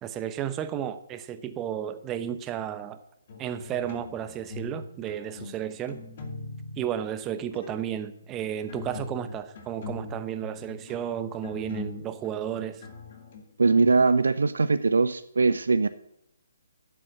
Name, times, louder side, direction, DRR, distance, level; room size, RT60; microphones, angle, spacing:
voice 1, 0.0-3.0 3.4-6.0 6.8-12.8, right 10 dB, 20° right, 0.8 m, -33 dB
sound 1, 3.3-4.8 5.1-6.9 7.4-7.8 8.4-14.0, left 3 dB, 45° left, 2.4 m, -41 dB
voice 2, 13.6-15.9, right 4 dB, 70° right, 0.5 m, -21 dB
10.0 x 7.6 x 7.7 m
figure-of-eight pair, 135°, 0 cm